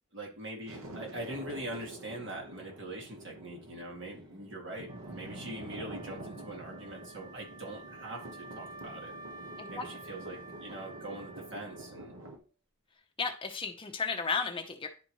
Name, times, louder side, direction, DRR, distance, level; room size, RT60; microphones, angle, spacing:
voice 1, 0.1-9.1 9.7-12.1, right 1 dB, 60° right, 0 dB, 2.1 m, -43 dB
sound 1, 0.7-12.4, right 1 dB, 80° right, 1.1 m, -47 dB
Wind instrument woodwind instrument, 4.8-12.4, right 2 dB, 20° right, 0.7 m, -50 dB
voice 2, 13.2-14.9, left 5 dB, 25° left, 5 dB, 0.7 m, -33 dB
10.5 x 4.2 x 3.0 m, 0.37 s
head